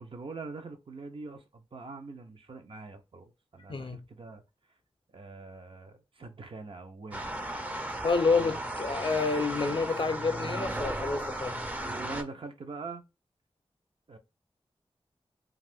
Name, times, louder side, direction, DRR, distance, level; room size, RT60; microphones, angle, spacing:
voice 1, 0.0-4.4 5.1-7.4 8.2-8.6 11.8-13.0 14.1-14.2, right 3 dB, 60° right, 0.6 m, -43 dB
voice 2, 3.7-4.0 8.0-11.6, left 4 dB, 55° left, 0.5 m, -28 dB
sound 1, 7.1-12.2, right 1 dB, 15° right, 0.5 m, -35 dB
2.5 x 2.4 x 3.4 m
wide cardioid pair, 95°, 10 cm